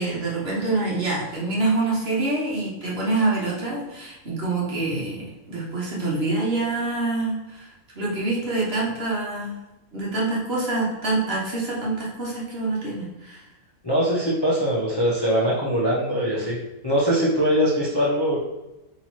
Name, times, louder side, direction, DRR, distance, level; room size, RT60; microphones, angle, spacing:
voice 1, 0.0-9.6 9.9-13.4, right 2 dB, 50° right, -5 dB, 1.1 m, -26 dB
voice 2, 13.8-16.6 16.8-18.4, equal, 30° left, -6 dB, 0.4 m, -22 dB
2.9 x 2.9 x 4.2 m, 0.97 s
omnidirectional pair, 1.5 m